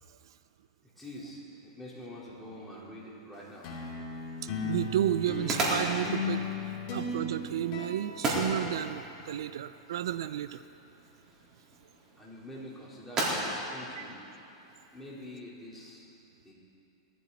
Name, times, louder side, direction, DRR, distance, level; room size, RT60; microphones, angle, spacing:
voice 1, 0.8-3.7 12.2-14.2 14.9-16.0 16.4-16.5, left 1 dB, 5° left, -7 dB, 4.1 m, -46 dB
sound 1, 3.3-15.0, right 1 dB, 25° right, 4.1 m, -37 dB
sound 2, 3.6-9.2, left 3 dB, 40° left, 3.0 m, -36 dB
voice 2, 4.4-10.6 14.0-14.1, right 11 dB, 80° right, 13 dB, 0.4 m, -32 dB
20.0 x 14.5 x 4.2 m, 2.8 s
hypercardioid pair, 135°, 2 cm